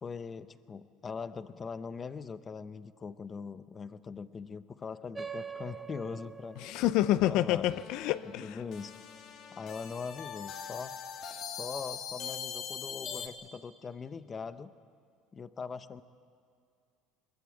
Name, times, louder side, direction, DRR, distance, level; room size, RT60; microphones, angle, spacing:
voice 1, 0.0-6.8 7.2-7.8 8.2-8.9 9.5-11.0 11.6-14.7 15.3-16.0, left 5 dB, 25° left, 0.7 m, -41 dB
sound 1, 5.1-10.1, right 5 dB, 15° right, 0.9 m, -46 dB
voice 2, 6.6-8.6, left 14 dB, 65° left, 0.6 m, -28 dB
sound 2, 7.7-13.3, left 7 dB, 45° left, 1.8 m, -42 dB
21.5 x 21.0 x 8.6 m
cardioid pair, 135°, 0 cm